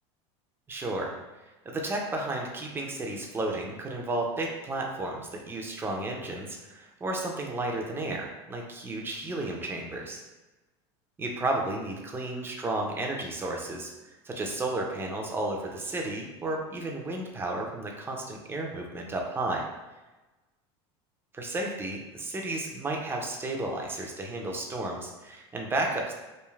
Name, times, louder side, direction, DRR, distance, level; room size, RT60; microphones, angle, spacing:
voice 1, 0.7-1.1 1.7-10.2 11.2-13.9 14.2-19.6 21.3-26.1, right 2 dB, 15° right, 0 dB, 0.5 m, -32 dB
3.1 x 2.4 x 2.3 m, 1.1 s
supercardioid pair, 120°, 14 cm